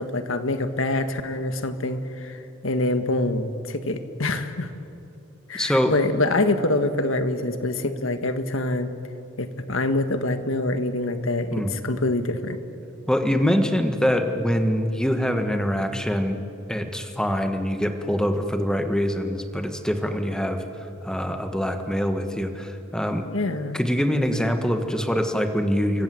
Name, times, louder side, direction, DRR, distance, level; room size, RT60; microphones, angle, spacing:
voice 1, 0.0-4.7 5.5-8.9 9.4-12.6 23.3-23.8, left 2 dB, 80° left, 8 dB, 1.7 m, -25 dB
voice 2, 5.5-6.0 11.5-11.7 13.1-16.4 16.7-20.6 21.0-23.2 23.7-26.0, equal, 5° left, 6 dB, 1.7 m, -24 dB
29.5 x 24.0 x 7.9 m, 2.8 s
head